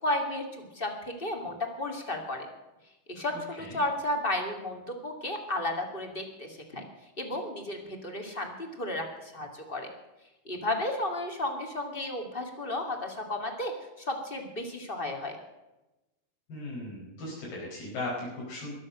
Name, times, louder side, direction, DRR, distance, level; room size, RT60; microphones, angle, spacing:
voice 1, 0.0-2.5 3.1-6.8 7.2-9.9 10.5-13.7 14.1-15.4, left 1 dB, 20° left, 3 dB, 1.9 m, -33 dB
voice 2, 3.3-3.8 16.5-18.7, left 2 dB, 85° left, -6 dB, 7.0 m, -38 dB
22.0 x 7.5 x 6.4 m, 1.0 s
omnidirectional pair, 4.3 m